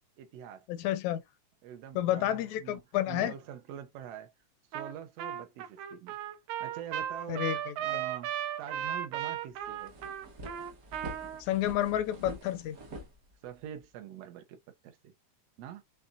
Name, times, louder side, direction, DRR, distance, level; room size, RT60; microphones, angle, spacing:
voice 1, 0.2-0.7 1.6-2.8 3.1-4.3 4.7-6.2 6.6-7.5 7.8-8.3 8.6-9.9 13.4-15.1 15.6-15.8, right 9 dB, 75° right, 1.6 m, -45 dB
voice 2, 0.7-1.2 2.0-3.3 7.3-8.0 11.4-12.8, left 13 dB, 80° left, 1.9 m, -30 dB
Trumpet, 4.7-4.9 5.2-11.4, right 11 dB, 90° right, 2.2 m, -36 dB
sound 1, 9.6-13.8, right 1 dB, 60° right, 0.9 m, -46 dB
5.5 x 3.4 x 2.5 m
omnidirectional pair, 3.3 m